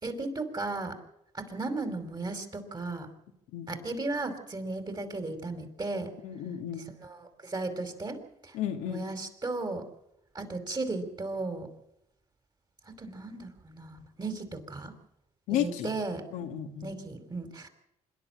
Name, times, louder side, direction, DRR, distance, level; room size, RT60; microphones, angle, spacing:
voice 1, 0.0-1.0 1.4-3.1 3.7-6.1 7.0-7.2 7.4-8.2 8.4-8.6 8.9-9.8 10.4-11.7 12.9-14.9 15.6-16.2 16.8-17.7, right 3 dB, 30° right, 6 dB, 5.2 m, -35 dB
voice 2, 6.2-6.9 8.5-9.1 15.5-15.9 16.3-16.9, left 10 dB, 85° left, 3 dB, 2.2 m, -33 dB
26.0 x 11.5 x 9.0 m, 0.83 s
supercardioid pair, 60°, 14 cm